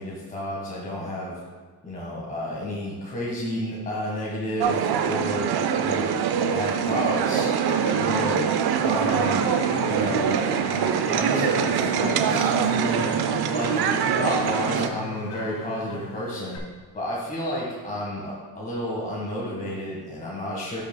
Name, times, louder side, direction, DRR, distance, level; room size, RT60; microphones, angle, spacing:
voice 1, 0.0-1.4 1.8-6.1 6.4-7.5 7.9-8.5 8.8-9.5 9.8-10.3 10.6-16.6 16.9-20.8, left 1 dB, 20° left, -5 dB, 1.6 m, -31 dB
sound 1, 4.6-14.9, right 7 dB, 60° right, 0.6 m, -23 dB
sound 2, 7.6-16.6, left 3 dB, 45° left, 1.4 m, -40 dB
11.5 x 5.6 x 2.3 m, 1.5 s
cardioid pair, 95°, 43 cm